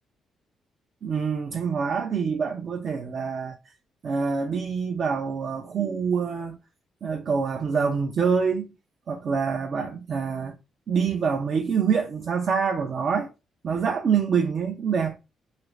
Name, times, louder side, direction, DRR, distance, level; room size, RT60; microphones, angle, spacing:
voice 1, 1.0-3.7 4.0-6.6 7.0-8.7 9.1-10.6 10.9-13.3 13.6-15.2, right 6 dB, 50° right, 0.4 m, -26 dB
2.9 x 2.4 x 3.1 m
cardioid pair, 90°, 0 cm